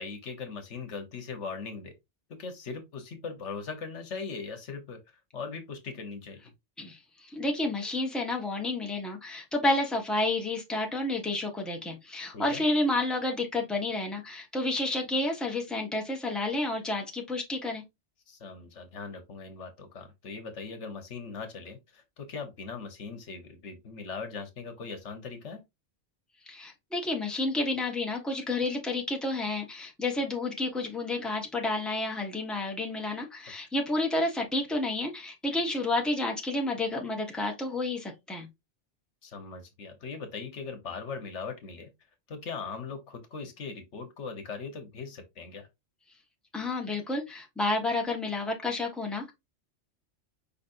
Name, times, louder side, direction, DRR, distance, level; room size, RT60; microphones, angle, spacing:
voice 1, 0.0-1.9 2.3-5.0 5.3-6.4 12.3-12.6 18.3-25.6 39.2-41.9 42.3-45.7, left 5 dB, 75° left, 1.3 m, -40 dB
voice 2, 6.8-17.8 26.5-38.5 46.5-49.3, left 2 dB, ahead, 1.1 m, -30 dB
5.1 x 4.1 x 2.5 m
omnidirectional pair, 1.2 m